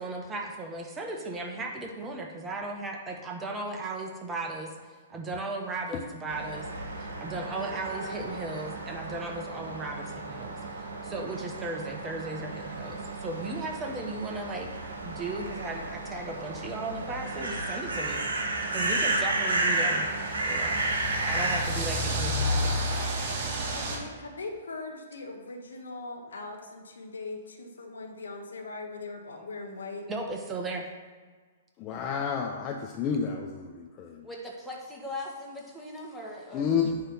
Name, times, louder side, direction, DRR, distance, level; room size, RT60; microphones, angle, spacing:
voice 1, 0.0-6.7 7.0-10.6 11.0-14.7 15.0-20.1 20.4-20.8 21.2-23.3 30.1-30.9, right 2 dB, 15° right, 1 dB, 1.2 m, -36 dB
sound 1, 6.3-21.6, right 2 dB, 70° right, 1.6 m, -32 dB
sound 2, 13.0-13.1 13.7-13.8 14.8-14.9 16.3-24.0, equal, 45° right, 2.1 m, -32 dB
voice 2, 23.7-30.1, left 3 dB, 75° left, 2 dB, 1.3 m, -40 dB
voice 3, 31.8-34.3 36.5-37.0, left 6 dB, 30° left, 1 dB, 0.7 m, -30 dB
voice 4, 34.2-36.7, left 2 dB, ahead, -4 dB, 1.8 m, -39 dB
9.5 x 3.4 x 6.1 m, 1.5 s
figure-of-eight pair, 115°, 0 cm